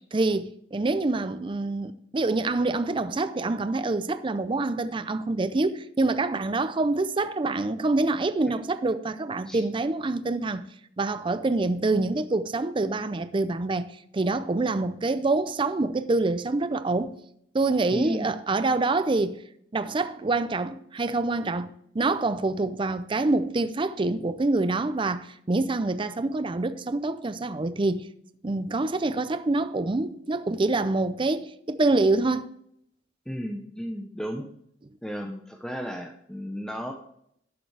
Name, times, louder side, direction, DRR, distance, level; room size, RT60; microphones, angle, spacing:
voice 1, 0.1-10.7 11.0-17.2 17.5-19.4 19.7-28.1 28.4-32.5, right 2 dB, 30° right, 0.5 m, -26 dB
voice 2, 17.9-18.3 33.3-34.5 35.0-36.9, equal, 5° left, 0.7 m, -34 dB
12.0 x 6.8 x 3.3 m
head